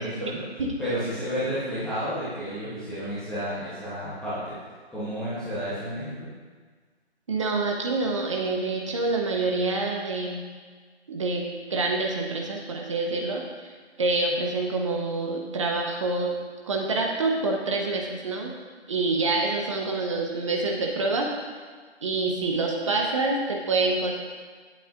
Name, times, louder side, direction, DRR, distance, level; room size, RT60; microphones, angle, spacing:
voice 1, 0.0-0.4 0.8-4.4 4.9-6.1, equal, ahead, -12 dB, 0.9 m, -31 dB
voice 2, 7.3-10.4 11.1-13.7 14.0-16.3 16.7-18.5 18.9-21.3 22.0-24.1, right 3 dB, 30° right, 0 dB, 1.0 m, -27 dB
17.5 x 7.7 x 2.5 m, 1.5 s
figure-of-eight pair, 150°, 33 cm